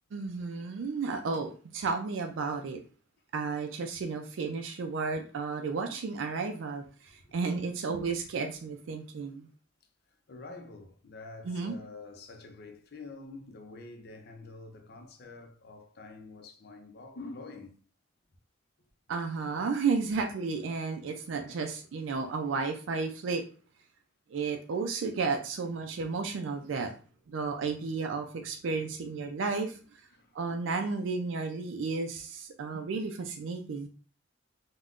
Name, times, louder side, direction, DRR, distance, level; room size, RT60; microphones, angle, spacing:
voice 1, 0.1-2.8 3.3-9.5 11.4-11.8 19.1-23.4 24.3-26.9 27.3-29.8 30.3-33.9, right 4 dB, 85° right, 0.4 m, -33 dB
voice 2, 7.0-7.3 10.3-17.8 21.5-21.7 30.1-30.4 30.8-31.0, left 3 dB, 55° left, 0.5 m, -47 dB
3.5 x 2.2 x 2.4 m
head